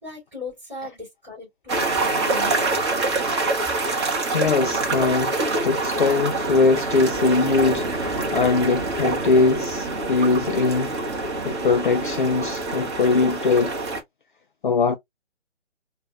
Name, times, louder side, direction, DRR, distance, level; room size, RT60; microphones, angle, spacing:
voice 1, 0.0-2.6, left 3 dB, 5° right, 2.6 m, -37 dB
sound 1, 1.7-14.0, right 3 dB, 25° right, 0.8 m, -25 dB
voice 2, 4.3-5.4 5.6-13.7 14.6-15.0, left 4 dB, 50° left, 0.4 m, -21 dB
5.4 x 2.2 x 2.3 m
figure-of-eight pair, 140°, 34 cm